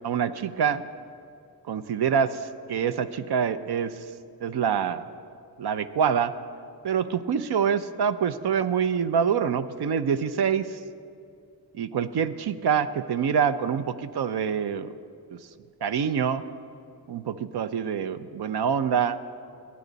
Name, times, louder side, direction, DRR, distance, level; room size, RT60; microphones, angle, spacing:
voice 1, 0.0-0.8 1.7-2.4 2.7-3.9 4.4-5.1 5.6-6.3 6.8-10.6 11.8-14.9 15.3-15.4 15.8-16.4 17.1-19.2, right 7 dB, 70° right, 12 dB, 0.6 m, -25 dB
20.5 x 9.3 x 4.0 m, 2.4 s
cardioid pair, 70°, 40 cm